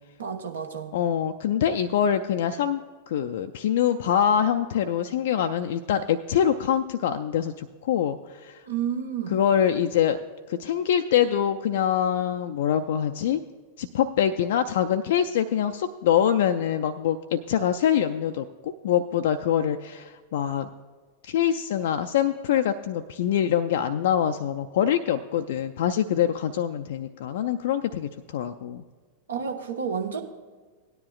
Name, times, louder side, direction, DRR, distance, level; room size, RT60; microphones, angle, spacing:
voice 1, 0.2-0.9 8.7-9.4 29.3-30.2, right 7 dB, 70° right, 4 dB, 1.1 m, -30 dB
voice 2, 0.9-2.8 3.1-8.6 9.3-10.2 10.5-13.4 13.8-20.7 21.2-28.8, left 9 dB, 55° left, 8 dB, 0.4 m, -24 dB
17.5 x 9.9 x 2.4 m, 1.4 s
figure-of-eight pair, 90°, 0 cm